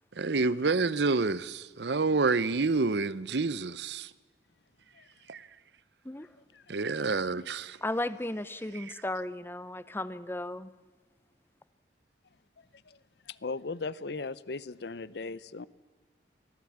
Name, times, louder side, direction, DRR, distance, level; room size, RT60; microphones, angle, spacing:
voice 1, 0.2-4.1 5.3-5.5 6.7-7.8, right 3 dB, 70° right, 0.7 m, -28 dB
voice 2, 7.8-10.7, left 1 dB, 10° left, 0.7 m, -35 dB
voice 3, 12.6-13.0 13.3-15.7, left 3 dB, 65° left, 0.7 m, -38 dB
24.0 x 15.5 x 8.7 m
head